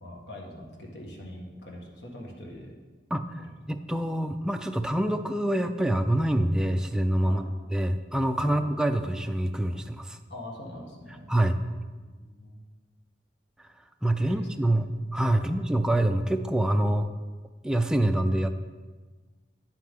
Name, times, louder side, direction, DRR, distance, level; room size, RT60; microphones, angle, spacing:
voice 1, 0.0-2.7 3.4-3.5 7.2-7.5 8.4-8.6 10.3-11.3 12.0-12.6 14.2-14.7 15.3-15.5, left 1 dB, 65° left, -1 dB, 1.6 m, -43 dB
voice 2, 3.1-7.4 7.7-10.2 11.3-11.6 14.0-17.1 17.6-18.6, right 1 dB, 5° right, 6 dB, 0.3 m, -26 dB
9.6 x 7.5 x 3.6 m, 1.4 s
head